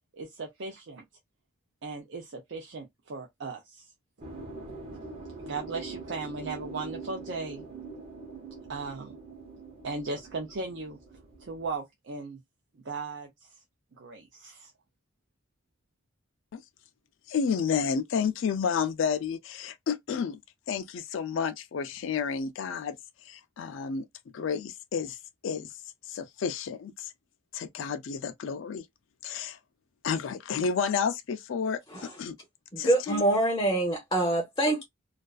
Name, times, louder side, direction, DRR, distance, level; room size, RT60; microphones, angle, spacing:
voice 1, 0.1-1.0 1.8-3.9 5.4-7.6 8.7-9.2 9.8-11.0 11.4-12.4 12.8-13.5 13.9-14.7, right 3 dB, 60° right, 0.5 m, -37 dB
sound 1, 4.2-11.8, right 4 dB, 30° right, 0.8 m, -43 dB
voice 2, 17.3-20.4 20.7-23.0 23.2-24.1 24.3-25.2 25.4-25.7 26.1-27.1 27.5-28.9 29.2-29.6 30.0-32.3 32.8-33.2, left 6 dB, 65° left, 0.4 m, -31 dB
voice 3, 31.9-32.2 32.7-34.8, right 1 dB, 20° left, 0.6 m, -26 dB
2.3 x 2.3 x 2.3 m
head